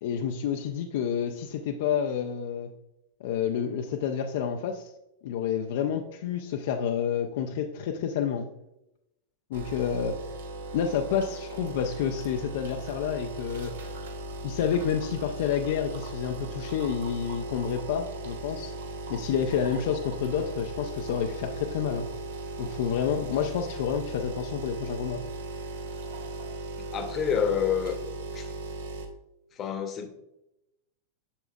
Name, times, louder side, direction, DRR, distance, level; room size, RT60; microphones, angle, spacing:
voice 1, 0.0-2.7 3.2-4.9 5.2-8.5 9.5-10.2 10.7-13.7 14.4-18.7 19.1-22.1 22.6-25.2, left 8 dB, 55° left, 3 dB, 0.5 m, -29 dB
sound 1, 9.5-29.1, right 2 dB, 60° right, 1.0 m, -38 dB
voice 2, 26.8-28.0 28.3-28.5 29.5-30.1, left 7 dB, 30° left, 8 dB, 1.0 m, -28 dB
8.2 x 6.9 x 2.3 m, 0.88 s
figure-of-eight pair, 90°, 0 cm